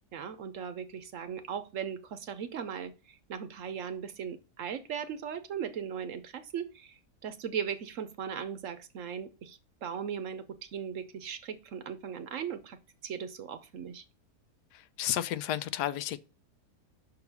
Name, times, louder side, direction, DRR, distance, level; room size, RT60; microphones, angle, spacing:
voice 1, 0.1-14.0, right 8 dB, 65° right, 0.9 m, -38 dB
voice 2, 14.7-16.2, left 12 dB, 90° left, 1.2 m, -32 dB
6.0 x 3.9 x 5.8 m
omnidirectional pair, 1.7 m